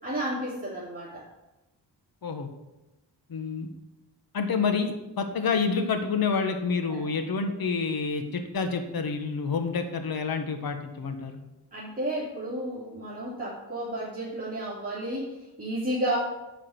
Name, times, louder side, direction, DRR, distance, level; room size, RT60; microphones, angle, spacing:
voice 1, 0.0-1.2 6.9-7.0 11.7-16.2, right 1 dB, 20° right, -9 dB, 2.7 m, -32 dB
voice 2, 3.3-3.7 4.3-11.4, left 5 dB, 60° left, 6 dB, 1.3 m, -28 dB
10.0 x 4.9 x 7.8 m, 0.98 s
wide cardioid pair, 155°, 42 cm